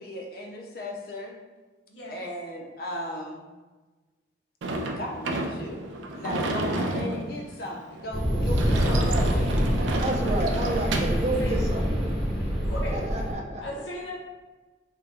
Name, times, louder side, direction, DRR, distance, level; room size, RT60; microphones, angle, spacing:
voice 1, 0.0-1.4 2.1-3.5 5.0-5.9 6.1-9.6, left 1 dB, 50° left, 0 dB, 0.5 m, -36 dB
voice 2, 1.9-2.2 6.5-7.0 8.7-9.5 11.4-11.6 12.6-13.0 13.6-14.2, left 1 dB, 80° left, -5 dB, 1.0 m, -38 dB
Sliding door / Slam, 4.6-11.3, right 2 dB, 85° right, 0.4 m, -31 dB
sound 1, 8.1-13.3, equal, ahead, 0.7 m, -26 dB
voice 3, 10.0-12.1 12.8-13.6, right 1 dB, 35° right, -1 dB, 0.5 m, -30 dB
3.9 x 2.3 x 3.3 m, 1.3 s
head